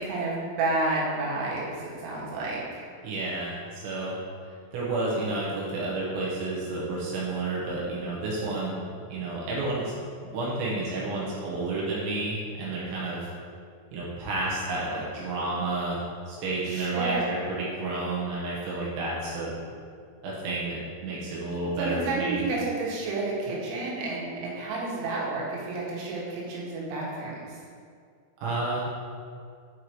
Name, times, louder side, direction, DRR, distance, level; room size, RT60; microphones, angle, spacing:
voice 1, 0.0-2.9 16.7-17.4 21.8-27.5, right 2 dB, 90° right, -4 dB, 4.1 m, -30 dB
voice 2, 3.0-4.2 4.7-8.8 9.1-9.9 10.3-13.3 13.9-19.5 20.2-22.4 28.4-28.8, right 2 dB, 70° right, -6 dB, 3.3 m, -30 dB
8.2 x 4.6 x 4.6 m, 2.2 s
omnidirectional pair, 6.0 m